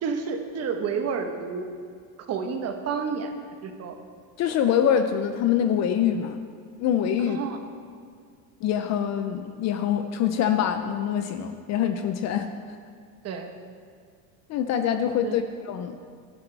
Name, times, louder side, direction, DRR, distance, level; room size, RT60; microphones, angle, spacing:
voice 1, 0.0-1.7 2.3-3.3 3.6-4.0 7.2-7.6 13.2-13.5 15.2-15.4, right 5 dB, 30° right, 5 dB, 1.2 m, -30 dB
voice 2, 4.4-6.4 6.8-7.4 8.6-12.8 14.5-16.0, left 9 dB, 35° left, 8 dB, 0.6 m, -25 dB
18.0 x 11.5 x 3.4 m, 2.1 s
supercardioid pair, 135°, 47 cm